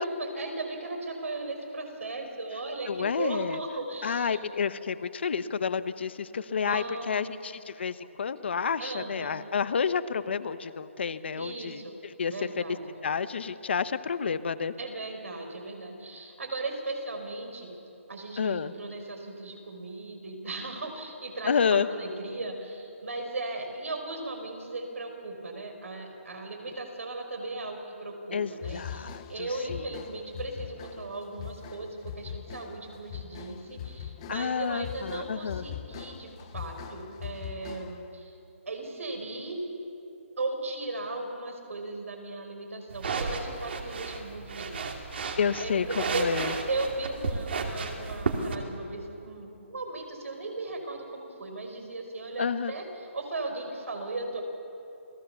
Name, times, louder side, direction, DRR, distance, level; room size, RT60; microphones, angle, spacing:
voice 1, 0.0-4.4 6.7-7.4 8.8-9.4 11.4-12.0 12.3-12.9 14.8-17.8 18.1-38.4 38.7-39.6 40.4-46.3 46.7-54.4, right 2 dB, 80° right, 4 dB, 5.3 m, -37 dB
voice 2, 2.9-3.6 4.0-12.6 13.0-14.7 18.4-18.7 21.5-21.9 28.3-29.8 34.3-35.6 45.4-45.9 46.2-46.5 52.4-52.7, left 6 dB, 55° left, 13 dB, 1.0 m, -30 dB
sound 1, 28.6-38.1, left 9 dB, 20° left, 0.8 m, -42 dB
sound 2, 42.9-48.6, right 4 dB, 50° right, 2.7 m, -33 dB
28.5 x 18.0 x 7.0 m, 2.9 s
hypercardioid pair, 170°, 7 cm